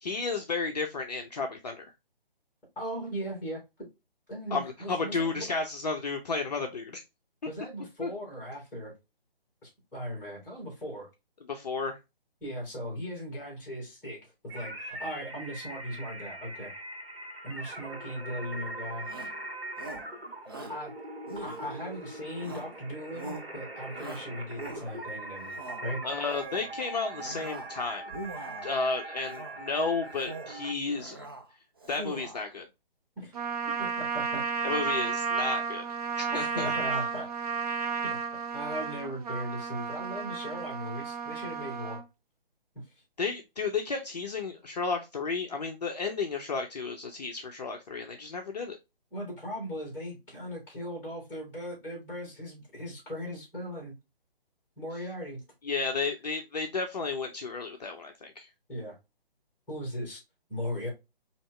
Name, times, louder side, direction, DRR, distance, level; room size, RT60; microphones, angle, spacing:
voice 1, 0.0-1.9 4.5-7.0 8.0-8.1 11.5-12.0 26.0-28.0 28.6-31.2 31.9-32.7 34.6-35.8 36.2-36.7 43.2-48.8 55.6-58.5, left 4 dB, 45° left, 0.6 m, -32 dB
voice 2, 2.8-3.6 4.3-5.5 7.4-8.9 9.6-11.1 12.4-16.7 17.4-19.1 20.7-20.9 21.3-25.5 25.8-26.0 33.2-33.3 33.8-34.7 36.3-37.3 38.5-42.0 42.7-43.0 49.1-54.0 54.8-55.4 58.7-59.0 59.7-60.2 60.5-60.9, equal, 5° left, 2.4 m, -38 dB
sound 1, 14.5-30.7, right 2 dB, 80° right, 1.6 m, -42 dB
Shout, 19.0-19.4 19.8-20.1 20.5-20.8 21.3-22.0 22.4-22.8 23.1-23.5 23.9-25.1 25.4-25.9 26.3-26.7 27.1-27.7 28.1-28.8 29.3-29.7 30.1-30.6 30.9-31.5 31.8-32.5, right 2 dB, 25° right, 0.4 m, -42 dB
Trumpet, 33.3-42.0, right 6 dB, 40° right, 0.8 m, -32 dB
4.3 x 2.8 x 3.1 m
figure-of-eight pair, 145°, 29 cm